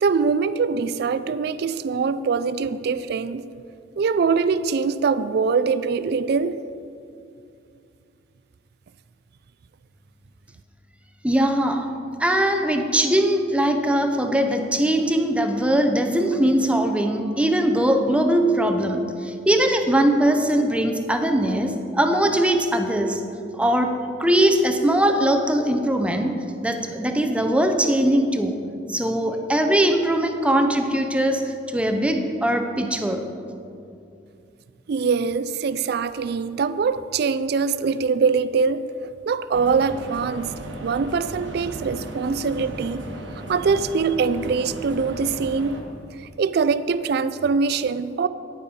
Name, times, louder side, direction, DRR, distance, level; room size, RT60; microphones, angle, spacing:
voice 1, 0.0-3.5 4.0-6.6 34.9-38.9 39.3-40.5 40.8-43.1 43.5-45.8 46.2-48.3, right 5 dB, 60° right, 14 dB, 0.3 m, -23 dB
voice 2, 11.2-11.9 12.2-23.2 23.5-28.6 28.9-33.3, right 1 dB, 5° right, 5 dB, 0.6 m, -21 dB
sound 1, 39.5-45.8, right 1 dB, 85° right, 1.1 m, -36 dB
9.5 x 8.9 x 4.2 m, 2.5 s
head